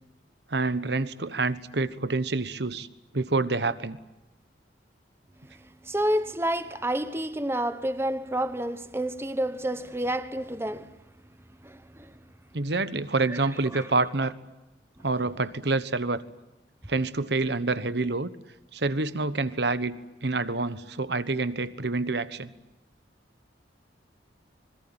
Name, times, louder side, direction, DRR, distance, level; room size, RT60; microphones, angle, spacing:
voice 1, 0.5-2.9 3.1-4.0 12.5-14.3 15.0-16.2 16.9-18.3 18.7-22.5, right 3 dB, 65° right, 1.2 m, -27 dB
voice 2, 5.4-11.0 11.6-12.2 13.3-13.4 13.7-13.9 15.0-15.1, right 1 dB, 15° right, 1.0 m, -30 dB
25.5 x 22.0 x 8.8 m
head